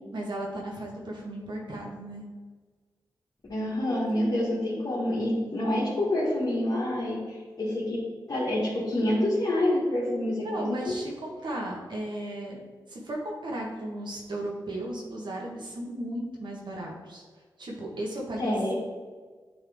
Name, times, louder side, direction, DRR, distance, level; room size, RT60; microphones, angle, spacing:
voice 1, 0.1-2.2 10.4-12.6 12.9-17.2 17.6-18.5, right 1 dB, 70° right, -2 dB, 1.4 m, -35 dB
voice 2, 3.5-8.0 8.3-11.0 18.4-18.7, left 1 dB, 50° left, -7 dB, 1.6 m, -27 dB
8.7 x 3.5 x 3.6 m, 1.5 s
wide cardioid pair, 80°, 8 cm